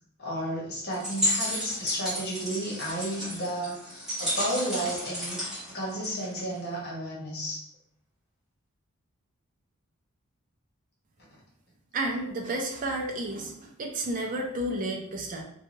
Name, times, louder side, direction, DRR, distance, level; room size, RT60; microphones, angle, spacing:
voice 1, 0.2-5.4 5.7-7.6, right 1 dB, 45° left, -4 dB, 1.0 m, -32 dB
sound 1, 0.9-6.6, equal, ahead, 1.1 m, -32 dB
voice 2, 11.9-15.4, right 1 dB, 40° right, 1 dB, 0.4 m, -31 dB
2.7 x 2.2 x 3.0 m, 0.71 s
head